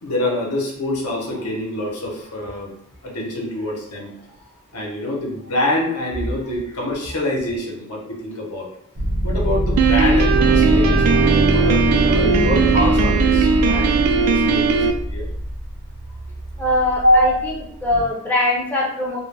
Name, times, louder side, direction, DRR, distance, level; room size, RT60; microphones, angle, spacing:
voice 1, 0.0-2.7 3.0-4.1 4.7-8.7 9.2-15.3 17.0-17.3, left 1 dB, 75° left, -1 dB, 0.7 m, -24 dB
sound 1, 9.0-18.0, right 1 dB, 65° right, 0.7 m, -22 dB
Piano, 9.8-14.9, right 5 dB, 85° right, 0.3 m, -18 dB
voice 2, 16.6-19.2, left 1 dB, 10° left, -5 dB, 0.4 m, -22 dB
2.1 x 2.1 x 3.2 m, 0.69 s
head